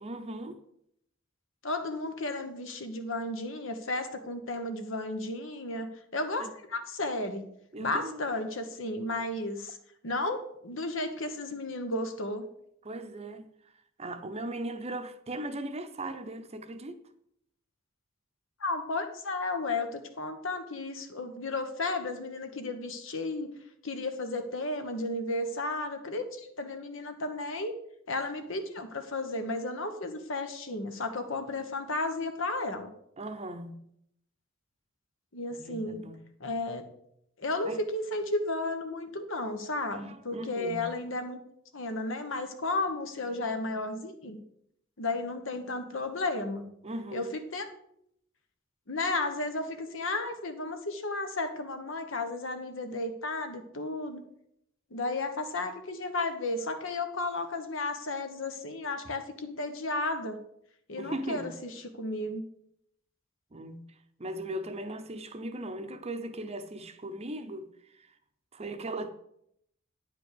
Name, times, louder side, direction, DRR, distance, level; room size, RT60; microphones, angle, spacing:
voice 1, 0.0-0.6 6.4-6.5 7.7-8.2 12.8-13.5 14.0-17.0 33.2-33.8 35.6-36.2 37.6-37.8 39.9-40.9 46.8-47.3 61.0-61.6 63.5-63.9 64.2-67.7 68.5-69.1, right 1 dB, 30° right, 0.7 m, -38 dB
voice 2, 1.6-7.5 7.8-9.8 10.0-12.4 18.6-23.5 23.8-27.7 28.1-32.9 35.3-36.1 36.4-36.8 37.4-41.4 41.7-44.4 45.0-46.7 47.1-47.7 48.9-54.2 54.9-60.4 60.9-62.4, left 2 dB, 70° left, 1.2 m, -33 dB
9.4 x 5.2 x 6.7 m
head